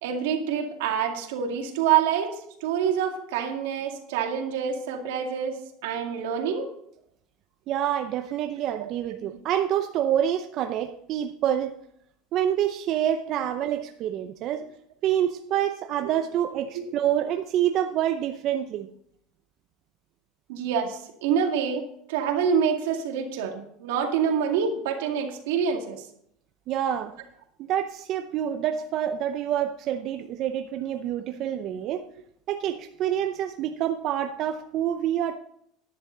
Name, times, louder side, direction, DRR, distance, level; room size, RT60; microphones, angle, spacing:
voice 1, 0.0-6.7 16.7-16.9 20.5-21.8 22.1-26.1, right 7 dB, 85° right, 3 dB, 2.1 m, -26 dB
voice 2, 7.7-11.8 12.3-14.7 15.0-18.9 26.7-27.1 27.7-32.1 32.5-35.4, right 10 dB, 45° right, 7 dB, 0.6 m, -27 dB
10.5 x 10.5 x 3.9 m, 0.72 s
supercardioid pair, 140°, 0 cm